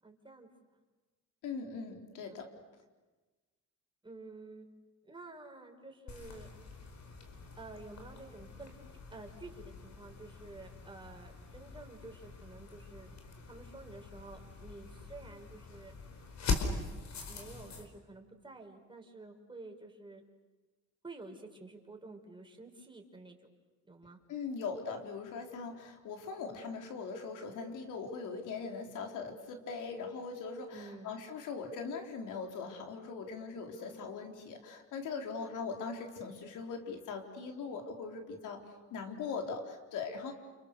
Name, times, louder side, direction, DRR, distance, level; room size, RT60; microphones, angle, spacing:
voice 1, 0.0-0.5 2.3-2.5 4.0-4.7 5.0-6.5 7.6-8.7 9.1-13.2 13.5-15.9 16.6-20.2 21.0-23.5 23.8-24.2 30.7-31.1 33.7-34.1 38.6-38.9, right 3 dB, 15° right, 2 dB, 5.4 m, -50 dB
voice 2, 1.4-2.5 24.3-38.6 38.9-40.3, left 5 dB, 85° left, 3 dB, 4.2 m, -40 dB
sound 1, 6.1-17.9, left 4 dB, 65° left, 4.9 m, -42 dB
29.5 x 29.0 x 6.9 m, 1.2 s
cardioid pair, 90°, 30 cm